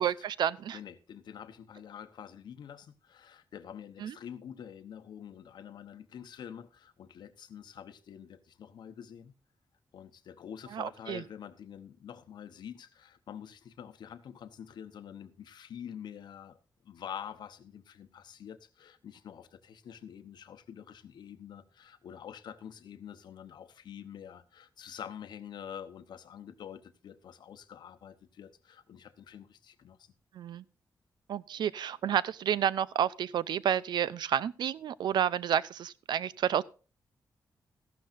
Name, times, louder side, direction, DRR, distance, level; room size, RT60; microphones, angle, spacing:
voice 1, 0.0-0.8 4.0-4.1 10.7-11.2 30.3-30.6 31.3-36.6, right 9 dB, 90° right, 0.5 m, -30 dB
voice 2, 0.7-9.3 9.9-16.6 16.8-30.1, left 9 dB, 85° left, 1.0 m, -47 dB
14.5 x 12.0 x 2.6 m
wide cardioid pair, 140°, 7 cm